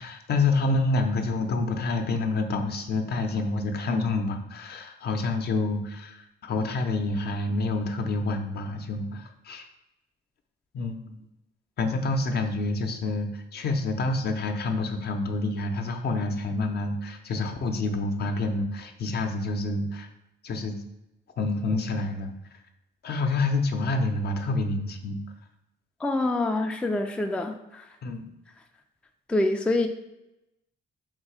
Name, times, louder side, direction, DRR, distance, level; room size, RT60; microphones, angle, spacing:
voice 1, 0.0-9.7 10.7-11.3 11.8-20.1 20.4-20.8 21.4-22.3 23.0-25.2 28.0-28.3, left 3 dB, 55° left, 5 dB, 0.6 m, -28 dB
voice 2, 26.0-27.9 29.3-29.9, left 2 dB, 5° left, 5 dB, 0.3 m, -26 dB
3.7 x 2.7 x 4.8 m, 0.90 s
cardioid pair, 90°, 20 cm